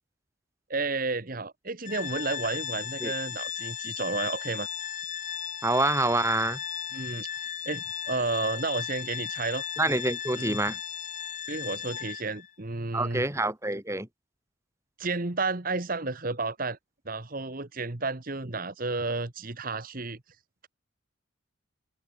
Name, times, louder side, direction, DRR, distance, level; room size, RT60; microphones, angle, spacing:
voice 1, 0.7-4.7 6.9-9.6 10.4-10.6 11.5-13.2 15.0-16.8 17.1-20.2, right 3 dB, 40° right, 1.4 m, -32 dB
Organ, 1.8-12.5, left 9 dB, 35° left, 1.9 m, -36 dB
voice 2, 5.6-6.6 9.8-10.8 12.9-14.1, right 2 dB, 15° right, 2.1 m, -26 dB
head